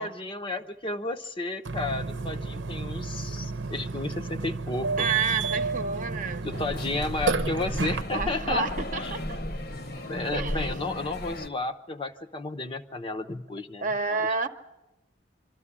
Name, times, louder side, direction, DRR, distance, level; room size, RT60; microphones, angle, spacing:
voice 1, 0.0-5.1 6.4-8.7 8.9-9.2 10.0-14.3, left 2 dB, 30° left, 0.9 m, -33 dB
Burping eructation, 1.6-8.0, right 4 dB, 80° right, 0.8 m, -31 dB
voice 2, 5.0-6.5 8.1-9.2 10.3-10.7 13.8-14.5, right 4 dB, 45° right, 1.0 m, -29 dB
sound 1, 6.5-11.5, left 1 dB, 55° left, 1.4 m, -35 dB
24.5 x 13.5 x 10.0 m
head